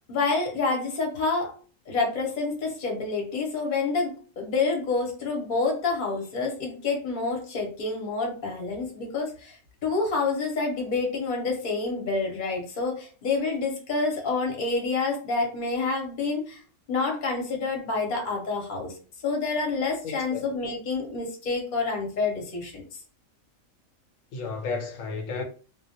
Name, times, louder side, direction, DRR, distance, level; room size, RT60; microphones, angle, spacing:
voice 1, 0.1-1.5 1.9-9.6 9.8-16.6 16.9-18.9 19.2-22.8, left 3 dB, 45° left, 0.8 m, -28 dB
voice 2, 20.0-20.4 24.3-25.4, left 4 dB, 75° left, 1.0 m, -32 dB
2.2 x 2.1 x 2.7 m
omnidirectional pair, 1.4 m